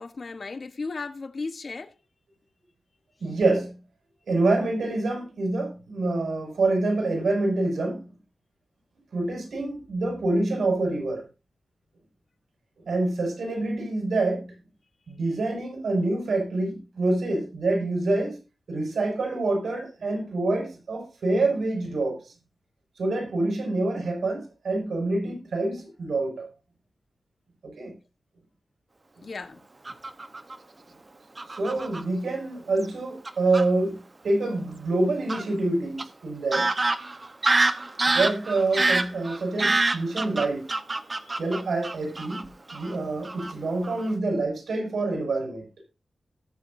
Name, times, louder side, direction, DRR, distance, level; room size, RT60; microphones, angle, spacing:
voice 1, 0.0-1.9 29.2-29.6 41.3-41.4, left 4 dB, 50° left, 1.2 m, -35 dB
voice 2, 3.2-3.8 4.3-8.0 9.1-11.2 12.8-14.5 15.1-18.4 18.7-22.3 23.0-26.5 27.6-27.9 31.5-36.7 38.1-40.7 41.4-45.6, right 2 dB, 75° right, 6.0 m, -26 dB
Fowl / Bird vocalization bird call bird song, 29.9-30.6 31.4-32.0 32.8-32.9 33.3-33.7 35.3-35.4 36.0-36.1 36.5-42.4 42.7-42.9 43.3-43.5 43.8-44.1, right 2 dB, 30° right, 1.0 m, -26 dB
19.0 x 7.1 x 2.7 m
wide cardioid pair, 105°, 0 cm